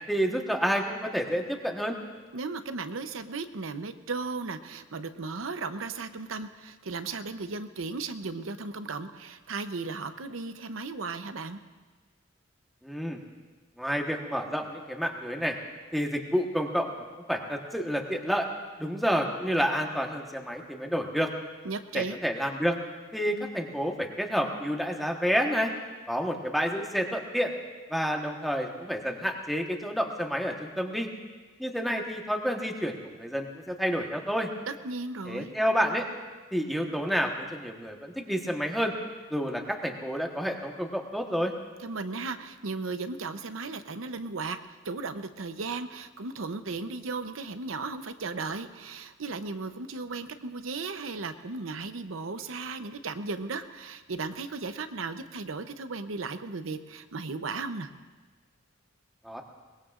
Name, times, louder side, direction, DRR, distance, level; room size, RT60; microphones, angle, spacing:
voice 1, 0.1-2.0 12.8-13.2 13.8-15.6 15.9-18.5 18.8-21.3 21.9-22.8 23.1-25.7 26.1-27.5 27.9-31.1 31.6-34.5 35.3-36.1 36.5-38.9 39.3-41.5 59.2-59.4, equal, ahead, 2 dB, 1.2 m, -29 dB
voice 2, 2.3-11.6 21.6-22.2 34.7-35.5 41.8-57.9, right 3 dB, 75° right, 9 dB, 0.8 m, -36 dB
22.5 x 20.5 x 2.5 m, 1.3 s
head